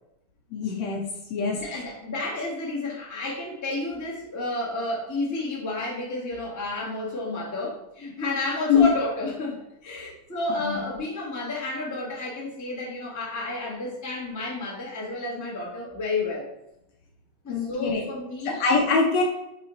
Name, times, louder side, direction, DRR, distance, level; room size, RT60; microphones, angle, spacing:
voice 1, 0.5-1.0 1.3-1.8 8.7-8.9 9.9-10.1 10.6-10.7 17.5-18.0 18.5-19.2, left 5 dB, 70° left, 1 dB, 1.8 m, -23 dB
voice 2, 1.5-16.5 17.4-18.6, left 2 dB, 15° left, -5 dB, 0.6 m, -31 dB
5.6 x 4.6 x 4.0 m, 0.86 s
omnidirectional pair, 3.7 m